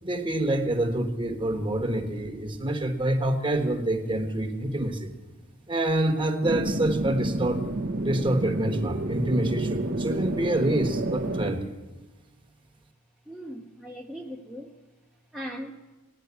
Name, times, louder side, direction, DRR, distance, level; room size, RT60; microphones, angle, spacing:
voice 1, 0.0-5.1 5.7-7.7 8.0-11.6, right 1 dB, 20° right, 5 dB, 1.2 m, -27 dB
sound 1, 6.4-11.5, right 1 dB, 45° right, 0.9 m, -29 dB
voice 2, 13.3-14.8 15.3-15.8, equal, 5° right, -2 dB, 0.7 m, -39 dB
16.5 x 10.0 x 8.2 m, 1.2 s
head